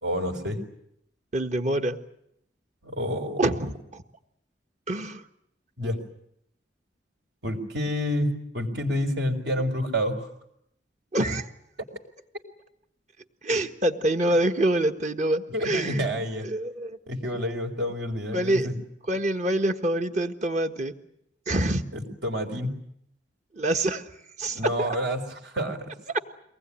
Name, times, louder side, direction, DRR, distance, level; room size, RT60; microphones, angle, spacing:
voice 1, 0.0-0.6 2.8-3.4 5.8-6.0 7.4-10.3 15.5-16.5 17.1-18.8 21.9-22.8 24.5-25.9, equal, 70° right, 5 dB, 4.0 m, -29 dB
voice 2, 1.3-2.0 3.4-4.0 4.9-5.2 11.1-11.5 13.4-16.1 16.4-17.0 18.3-18.8 19.1-20.9 21.5-21.8 23.5-24.1 24.4-24.9 26.1-26.2, right 1 dB, 40° right, 6 dB, 1.5 m, -26 dB
24.0 x 19.5 x 9.9 m, 0.77 s
head